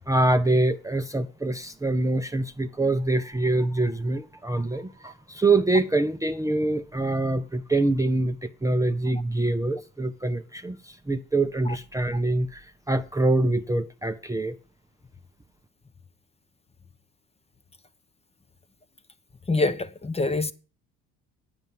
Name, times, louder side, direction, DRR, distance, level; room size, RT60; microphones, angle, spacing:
voice 1, 0.1-14.6, right 2 dB, 10° right, 0.7 m, -25 dB
voice 2, 19.5-20.5, left 3 dB, 20° left, 0.9 m, -25 dB
9.3 x 6.9 x 7.4 m
supercardioid pair, 70°, 34 cm